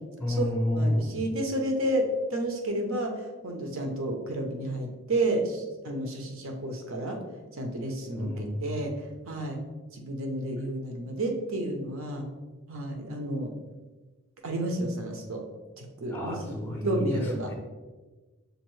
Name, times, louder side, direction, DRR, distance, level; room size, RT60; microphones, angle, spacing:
voice 1, 0.2-1.2 8.2-8.9 16.1-17.2 17.5-17.6, left 1 dB, 10° left, 1 dB, 0.5 m, -29 dB
voice 2, 0.8-7.2 7.5-8.9 9.3-9.6 9.9-12.3 12.7-13.5 14.4-15.4 15.8-17.5, right 1 dB, 65° right, 3 dB, 0.7 m, -31 dB
6.4 x 2.6 x 3.1 m, 1.2 s
head